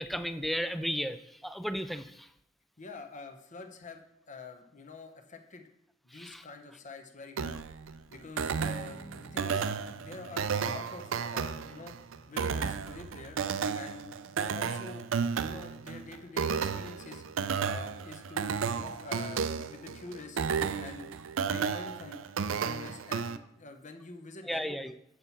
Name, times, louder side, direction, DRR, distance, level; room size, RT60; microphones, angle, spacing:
voice 1, 0.0-2.3 6.1-6.4 24.5-24.9, equal, ahead, 10 dB, 0.3 m, -34 dB
voice 2, 2.8-5.7 6.0-7.5 8.1-9.7 10.0-12.0 12.3-13.4 13.7-15.1 15.4-17.2 17.7-20.4 20.8-21.1 21.4-24.7, left 3 dB, 40° left, 6 dB, 0.9 m, -46 dB
sound 1, 7.4-23.4, right 6 dB, 75° right, 0.4 m, -33 dB
Guitar, 8.8-18.1, right 1 dB, 65° left, 1.9 m, -59 dB
7.5 x 7.2 x 4.2 m, 0.80 s
head